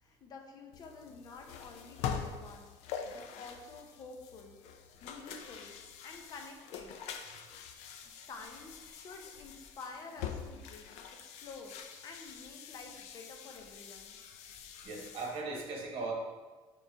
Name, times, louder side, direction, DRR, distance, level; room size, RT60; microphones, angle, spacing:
voice 1, 0.0-2.7 3.0-5.7 6.0-6.9 8.0-11.8 12.0-14.2, left 4 dB, 35° left, 3 dB, 0.6 m, -50 dB
sound 1, 0.7-15.4, left 7 dB, 90° left, 0.4 m, -45 dB
voice 2, 14.8-16.1, right 3 dB, 55° right, -1 dB, 1.1 m, -38 dB
4.2 x 3.2 x 3.9 m, 1.3 s
cardioid pair, 155°, 11 cm